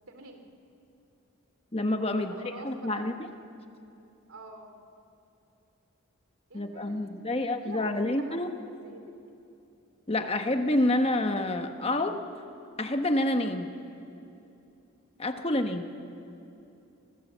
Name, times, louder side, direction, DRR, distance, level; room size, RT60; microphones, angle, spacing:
voice 1, 0.1-0.5 2.1-3.2 4.3-4.8 6.5-9.2 15.3-15.9, right 2 dB, 80° right, 5 dB, 2.9 m, -47 dB
voice 2, 1.7-2.3 2.6-3.1 6.5-8.5 10.1-12.2 12.8-13.8 15.2-15.9, left 1 dB, 30° left, 6 dB, 1.2 m, -28 dB
29.5 x 22.0 x 7.5 m, 2.8 s
head